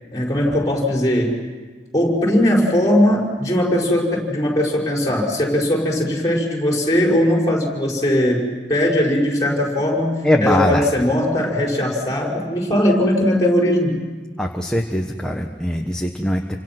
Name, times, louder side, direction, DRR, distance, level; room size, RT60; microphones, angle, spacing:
voice 1, 0.1-1.3 1.9-8.4 8.7-14.0, left 1 dB, 20° left, -1 dB, 5.8 m, -19 dB
voice 2, 10.2-10.9 14.4-16.6, left 1 dB, 5° left, 1 dB, 1.3 m, -21 dB
29.0 x 26.0 x 6.1 m, 1.4 s
head